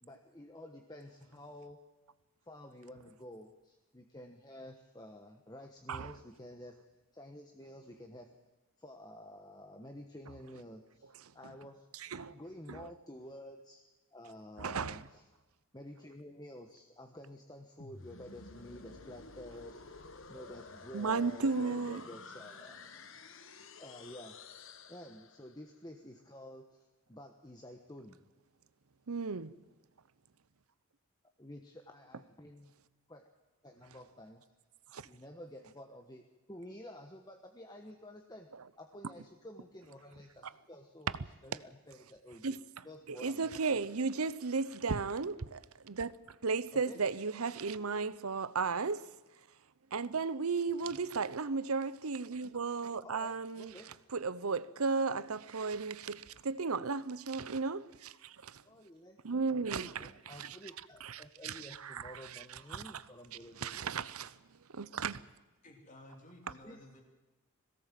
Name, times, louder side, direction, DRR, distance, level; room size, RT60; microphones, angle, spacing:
voice 1, 0.0-1.8 2.4-6.8 7.1-8.3 8.8-11.9 12.3-15.3 15.7-22.8 23.8-24.4 24.9-28.2 31.4-32.7 33.1-33.2 33.6-34.5 35.0-36.2 36.5-38.5 38.8-43.9 46.7-47.0 50.8-51.0 53.0-53.9 58.6-59.2 59.7-64.1 66.6-66.8, left 1 dB, 20° left, 1.2 m, -51 dB
voice 2, 12.0-12.3 12.7-12.9 14.6-15.0 20.9-22.0 29.1-29.5 34.9-35.1 42.4-42.6 43.1-46.1 46.4-49.1 49.9-53.7 54.1-58.6 59.2-60.6 61.0-62.4 62.7-63.0 63.6-64.3 64.7-65.2, right 4 dB, 85° right, 0.8 m, -35 dB
sound 1, 17.8-25.7, left 4 dB, 65° left, 1.3 m, -52 dB
voice 3, 65.6-67.0, left 1 dB, 35° left, 3.1 m, -54 dB
21.5 x 17.5 x 7.6 m
head